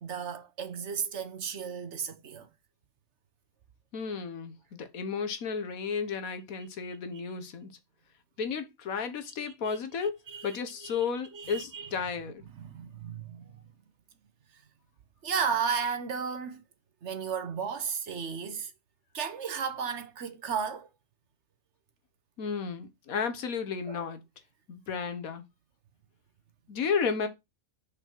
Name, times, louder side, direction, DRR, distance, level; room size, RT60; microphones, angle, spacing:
voice 1, 0.0-2.5 9.4-9.8 10.3-10.6 10.8-11.0 11.3-11.9 12.5-13.5 15.2-16.6 17.0-18.7 19.1-20.9 23.9-24.0, right 6 dB, 60° right, 1.2 m, -34 dB
voice 2, 3.9-7.7 8.4-10.2 10.4-12.4 22.4-24.2 24.7-25.4 26.7-27.3, left 6 dB, 85° left, 1.5 m, -33 dB
6.1 x 4.9 x 4.4 m
omnidirectional pair, 1.4 m